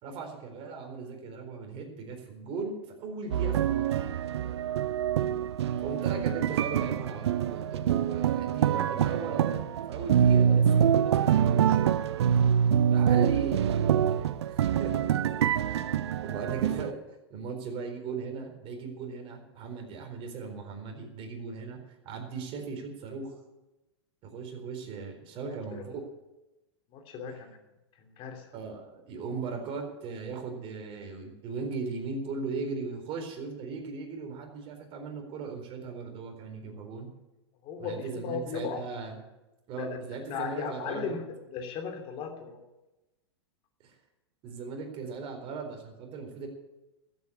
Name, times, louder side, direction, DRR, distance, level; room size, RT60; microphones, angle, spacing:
voice 1, 0.0-4.0 5.8-9.6 9.9-11.8 12.9-15.1 16.2-17.0 17.3-21.8 22.0-23.3 24.2-26.0 27.3-27.4 28.5-37.1 37.8-39.2 39.7-41.2 43.8-43.9 44.4-46.5, right 4 dB, 40° right, 3 dB, 4.2 m, -38 dB
sound 1, 3.3-16.9, right 9 dB, 80° right, 0.6 m, -25 dB
voice 2, 25.4-26.0 26.9-27.6 28.0-28.5 37.6-38.8 39.8-40.0 40.3-42.6, left 6 dB, 40° left, 5 dB, 2.8 m, -37 dB
14.0 x 8.3 x 8.6 m, 1.0 s
hypercardioid pair, 115°, 14 cm